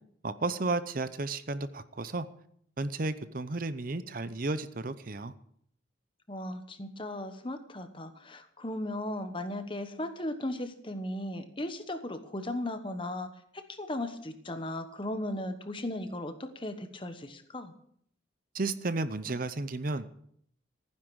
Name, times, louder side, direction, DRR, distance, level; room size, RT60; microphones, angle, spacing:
voice 1, 0.2-2.3 2.8-5.3 18.5-20.1, right 3 dB, 45° right, 13 dB, 0.7 m, -33 dB
voice 2, 6.3-17.7, left 1 dB, 25° left, 9 dB, 1.2 m, -37 dB
15.0 x 10.0 x 6.2 m, 0.67 s
head